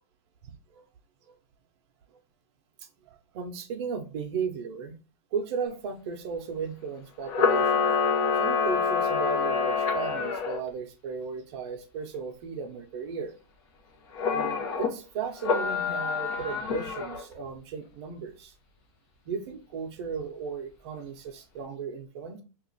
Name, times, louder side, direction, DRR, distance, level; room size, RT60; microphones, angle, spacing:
voice 1, 0.4-0.8 1.3-1.4 3.3-5.0 5.3-13.3 14.3-18.5 19.3-22.4, right 6 dB, 45° right, 6 dB, 0.6 m, -35 dB
Camera, 7.3-10.6 14.1-14.9 15.4-17.2, left 5 dB, 45° left, 0.9 m, -26 dB
3.0 x 2.4 x 3.9 m, 0.34 s
supercardioid pair, 160°, 19 cm